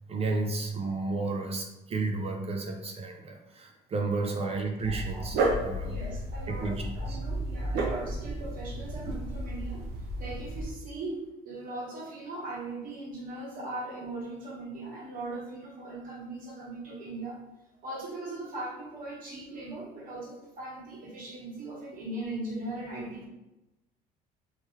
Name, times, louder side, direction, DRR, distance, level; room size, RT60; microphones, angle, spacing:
voice 1, 0.1-6.0 6.5-7.2, right 3 dB, 35° right, 3 dB, 0.5 m, -32 dB
Dog, 4.8-10.7, right 2 dB, 75° right, 0.7 m, -32 dB
voice 2, 4.9-5.3 5.8-9.8 10.2-11.2 11.4-17.4 17.8-23.3, right 2 dB, 55° right, -4 dB, 1.5 m, -39 dB
3.5 x 3.1 x 3.1 m, 0.97 s
cardioid pair, 110°, 17 cm